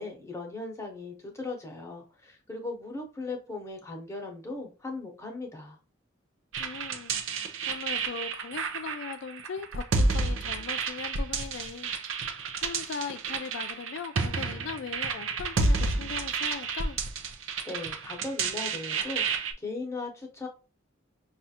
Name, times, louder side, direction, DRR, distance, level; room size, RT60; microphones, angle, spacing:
voice 1, 0.0-5.8 17.6-20.5, left 3 dB, 15° left, 0.9 m, -38 dB
sound 1, 6.5-19.5, right 4 dB, 80° right, 0.5 m, -30 dB
voice 2, 6.6-17.0, left 5 dB, 70° left, 0.4 m, -39 dB
5.5 x 2.4 x 2.8 m
head